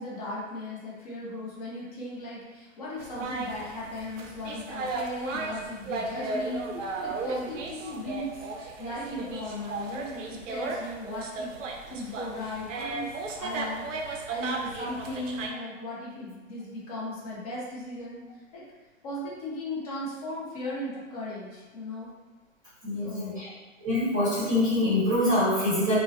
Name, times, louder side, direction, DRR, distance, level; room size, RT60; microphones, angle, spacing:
voice 1, 0.0-13.1 13.4-18.2 18.5-18.6 19.0-22.1 23.0-23.4, left 1 dB, 30° left, -7 dB, 0.6 m, -37 dB
sound 1, 3.0-15.5, right 3 dB, 70° right, 0.5 m, -35 dB
voice 2, 22.8-23.5 23.8-26.0, left 1 dB, 10° right, -13 dB, 0.8 m, -25 dB
2.3 x 2.1 x 2.6 m, 1.2 s
hypercardioid pair, 155°, 40 cm